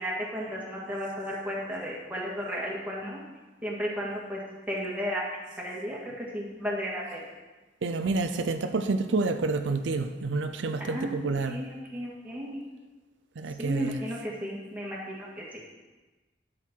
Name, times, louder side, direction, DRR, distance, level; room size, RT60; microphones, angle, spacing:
voice 1, 0.0-3.2 3.6-4.4 4.7-5.2 5.6-7.2 10.8-11.2 11.5-12.6 13.6-15.4, equal, 10° right, -5 dB, 2.1 m, -34 dB
voice 2, 7.8-11.6 13.4-14.0, right 3 dB, 90° right, 8 dB, 0.6 m, -28 dB
12.0 x 6.5 x 4.6 m, 1.2 s
head